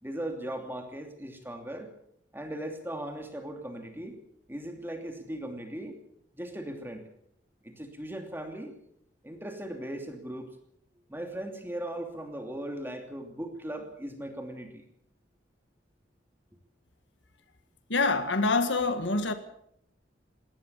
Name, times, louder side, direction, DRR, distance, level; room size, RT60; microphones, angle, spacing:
voice 1, 0.0-1.9 2.3-4.2 4.5-6.0 6.3-7.1 7.6-8.7 9.2-10.6 11.1-14.9, right 1 dB, 10° right, 2.8 m, -38 dB
voice 2, 17.9-19.3, left 3 dB, 75° left, 1.7 m, -26 dB
20.5 x 17.5 x 7.2 m
head